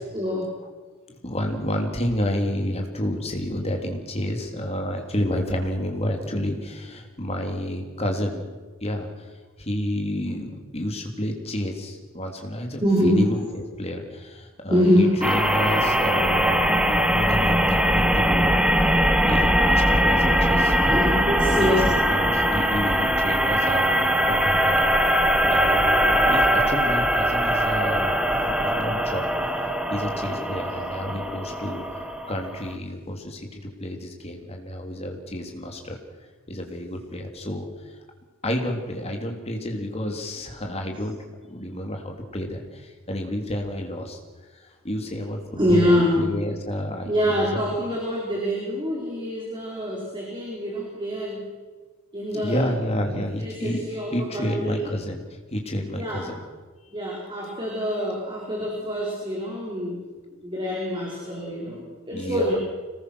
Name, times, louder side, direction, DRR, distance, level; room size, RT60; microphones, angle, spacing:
voice 1, 0.1-0.5 12.8-13.3 14.7-15.3 20.9-21.8 45.6-46.2 47.1-51.4 52.1-52.7 53.0-54.8 56.0-56.2 56.9-60.0 60.4-62.6, equal, 25° right, -4 dB, 5.3 m, -25 dB
voice 2, 1.2-8.4 8.8-9.3 9.6-21.0 21.4-24.9 25.4-29.3 29.9-36.0 36.5-38.0 38.4-41.2 41.5-44.2 44.5-47.8 52.3-55.2 55.5-56.4 59.9-60.2 62.1-62.6, equal, 30° left, 2 dB, 3.4 m, -30 dB
sound 1, 15.2-32.7, equal, 5° right, 1.5 m, -21 dB
25.5 x 20.0 x 6.4 m, 1.3 s
head